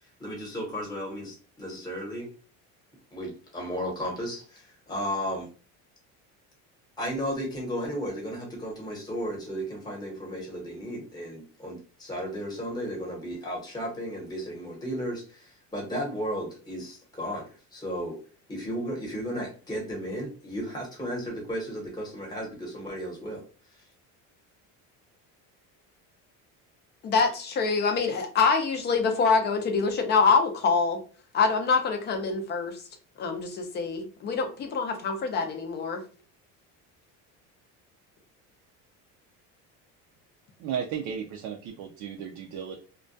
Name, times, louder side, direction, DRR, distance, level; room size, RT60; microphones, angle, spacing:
voice 1, 0.2-2.3 3.1-5.5 7.0-18.1 18.5-23.4, equal, 10° left, 0.9 m, -34 dB
voice 2, 27.0-31.0 31.3-32.8 33.2-36.0, left 5 dB, 30° left, 0.4 m, -25 dB
voice 3, 40.6-42.8, right 8 dB, 60° right, 0.4 m, -34 dB
2.2 x 2.2 x 2.5 m
cardioid pair, 150°, 33 cm